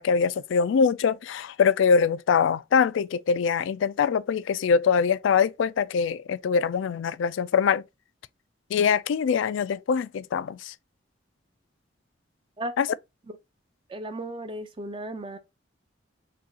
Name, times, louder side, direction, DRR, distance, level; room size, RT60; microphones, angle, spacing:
voice 1, 0.0-7.8 8.7-10.7 12.8-12.9, left 6 dB, 80° left, 0.3 m, -23 dB
voice 2, 13.9-15.4, right 1 dB, 25° right, 0.5 m, -35 dB
6.1 x 2.3 x 2.8 m
head